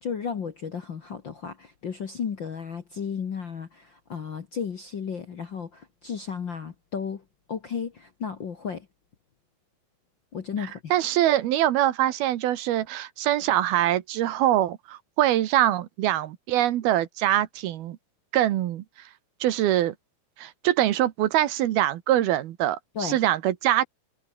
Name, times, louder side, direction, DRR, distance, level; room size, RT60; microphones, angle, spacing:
voice 1, 0.0-7.2 7.5-8.9 10.3-10.9 22.9-23.2, left 6 dB, 70° left, 1.1 m, -34 dB
voice 2, 10.9-18.0 18.3-18.8 19.4-19.9 20.4-23.9, right 13 dB, 70° right, 3.0 m, -23 dB
omnidirectional pair, 4.7 m